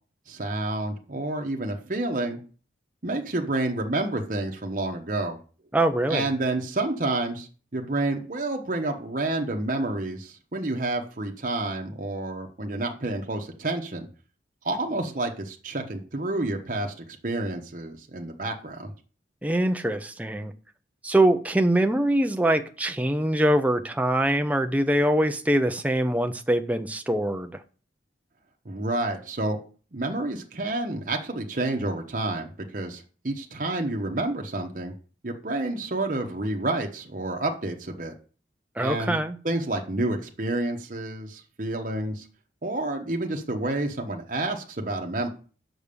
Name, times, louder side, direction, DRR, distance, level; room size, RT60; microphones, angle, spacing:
voice 1, 0.3-2.4 3.0-5.4 6.1-7.5 7.7-14.1 14.6-16.9 17.2-18.9 28.6-29.6 29.9-34.9 35.2-38.2 38.8-39.2 39.4-42.3 42.6-45.3, right 2 dB, 45° right, 1.0 m, -29 dB
voice 2, 5.7-6.3 19.4-20.5 21.0-27.6 38.8-39.4, right 1 dB, 10° right, 0.5 m, -23 dB
6.1 x 5.2 x 6.8 m
head